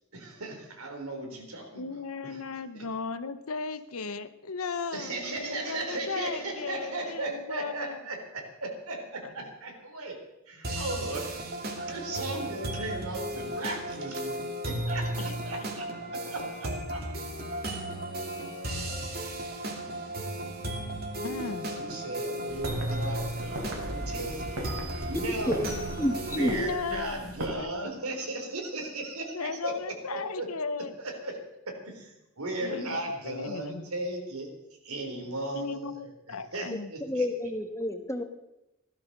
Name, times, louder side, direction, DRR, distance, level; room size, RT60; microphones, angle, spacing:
voice 1, 0.1-2.4 2.7-2.8 4.9-10.2 10.5-11.4 11.8-15.9 16.3-17.0 19.1-19.3 21.2-21.4 21.7-24.7 25.0-25.8 26.3-30.5 31.2-31.4 31.7-34.5 34.8-36.0 36.3-37.3, right 2 dB, 90° right, 3 dB, 3.8 m, -36 dB
voice 2, 1.8-8.0 15.2-15.7 20.7-21.7 26.5-27.8 29.3-30.9 32.6-33.9 35.5-36.9, left 4 dB, 80° left, 12 dB, 0.9 m, -36 dB
sound 1, 10.6-26.6, right 1 dB, 45° right, 2.7 m, -35 dB
sound 2, 22.5-27.5, right 1 dB, 70° right, 3.6 m, -38 dB
voice 3, 26.0-26.5 37.1-38.2, left 1 dB, 15° left, 7 dB, 1.4 m, -29 dB
16.5 x 12.5 x 6.6 m, 0.92 s
head